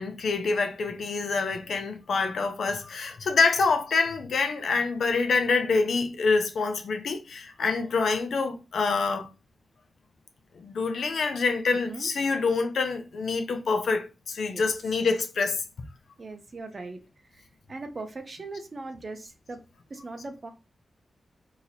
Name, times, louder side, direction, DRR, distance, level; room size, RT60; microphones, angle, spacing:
voice 1, 0.0-9.3 10.6-15.6, left 4 dB, 80° left, 0.7 m, -26 dB
voice 2, 11.7-12.1 14.4-15.0 16.2-17.0 17.3-19.6 19.9-20.5, right 3 dB, 45° right, 0.7 m, -40 dB
2.9 x 2.8 x 4.0 m
wide cardioid pair, 90°, 0 cm